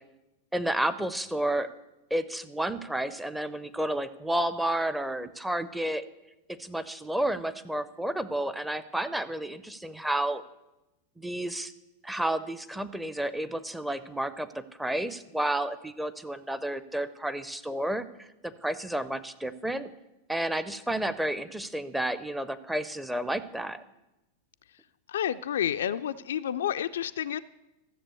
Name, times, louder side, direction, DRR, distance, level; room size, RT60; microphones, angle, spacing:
voice 1, 0.5-1.7 2.1-6.0 6.5-10.4 11.2-11.7 12.0-19.9 20.3-23.8, right 1 dB, 5° right, 12 dB, 0.7 m, -31 dB
voice 2, 25.1-27.4, left 10 dB, 60° left, 11 dB, 0.4 m, -30 dB
13.5 x 7.4 x 8.0 m, 0.97 s
figure-of-eight pair, 90°, 0 cm